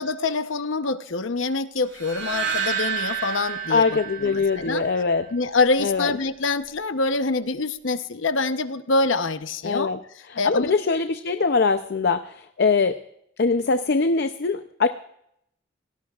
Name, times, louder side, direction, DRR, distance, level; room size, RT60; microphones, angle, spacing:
voice 1, 0.0-3.8 4.2-4.9 5.3-9.9 10.4-10.7, left 3 dB, 80° left, 10 dB, 0.9 m, -25 dB
sound 1, 1.9-5.1, right 7 dB, 65° right, 6.1 m, -30 dB
voice 2, 3.7-5.3 5.8-6.1 9.6-10.0 10.3-13.0 13.4-14.9, left 4 dB, 55° left, 9 dB, 0.6 m, -22 dB
27.5 x 18.0 x 2.4 m, 0.76 s
head